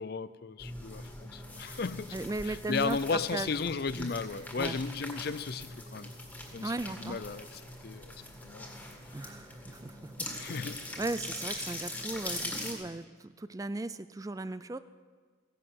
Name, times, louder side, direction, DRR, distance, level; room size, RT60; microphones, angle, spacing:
voice 1, 0.0-2.2 2.4-6.1 6.5-8.1 8.4-8.7 10.4-10.9 11.6-11.7, left 4 dB, 50° left, 0.5 m, -35 dB
sound 1, 0.6-12.7, left 1 dB, 10° left, 1.9 m, -42 dB
voice 2, 2.1-3.5 4.0-4.1 4.6-4.8 6.6-7.2 9.1-10.5 11.0-14.8, right 2 dB, 15° right, 0.4 m, -37 dB
16.0 x 11.0 x 7.7 m
head